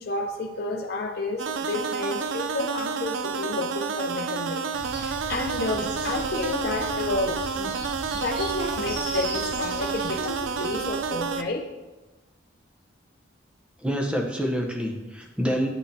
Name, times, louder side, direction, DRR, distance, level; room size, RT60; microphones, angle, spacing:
voice 1, 0.0-4.6 4.9-7.8 8.1-11.7, left 2 dB, 55° left, 2 dB, 0.6 m, -31 dB
sound 1, 1.4-11.4, right 5 dB, 85° right, 0.4 m, -30 dB
sound 2, 4.7-11.5, right 1 dB, 70° right, 2.0 m, -38 dB
voice 2, 13.8-15.7, equal, 5° right, 1 dB, 0.8 m, -27 dB
9.8 x 6.3 x 2.7 m, 1.1 s
head